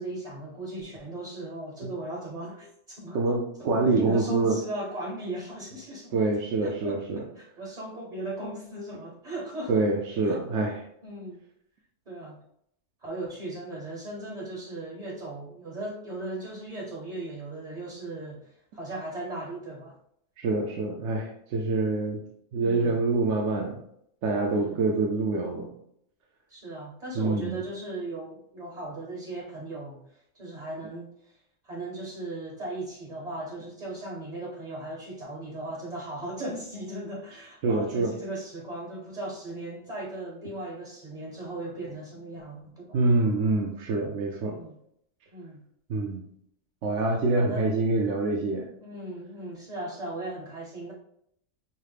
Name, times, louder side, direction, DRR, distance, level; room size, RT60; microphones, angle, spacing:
voice 1, 0.0-3.2 3.6-6.3 6.6-9.8 10.3-10.4 11.0-11.4 12.1-12.4 13.0-20.0 22.6-23.0 24.5-24.9 26.5-30.0 30.4-31.1 31.6-43.0 44.5-44.8 45.3-45.6 47.4-47.7 48.8-50.9, right 2 dB, 35° right, -2 dB, 0.8 m, -37 dB
voice 2, 3.1-4.6 6.1-7.2 9.7-10.8 20.4-22.2 22.5-23.8 24.2-25.7 27.1-27.6 37.6-38.1 42.9-44.6 45.9-46.2 46.8-48.7, right 3 dB, 70° right, 0 dB, 0.9 m, -26 dB
5.5 x 2.1 x 3.3 m, 0.72 s
omnidirectional pair, 1.4 m